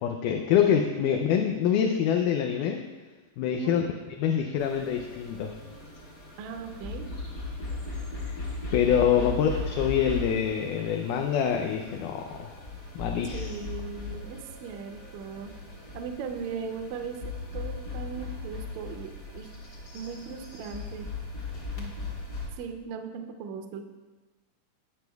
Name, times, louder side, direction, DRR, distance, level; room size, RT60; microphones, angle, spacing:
voice 1, 0.0-2.8 3.4-3.9 4.2-5.6 8.7-12.6 13.0-13.5, left 8 dB, 80° left, 3 dB, 2.0 m, -25 dB
voice 2, 0.9-1.3 3.5-3.8 6.4-7.1 9.2-9.4 13.3-15.5 15.9-19.5 19.9-21.1 21.8-21.9 22.6-23.9, right 6 dB, 75° right, 5 dB, 1.8 m, -38 dB
sound 1, 4.6-22.5, left 3 dB, 35° left, 1.5 m, -38 dB
18.5 x 6.2 x 2.3 m, 1.2 s
omnidirectional pair, 3.9 m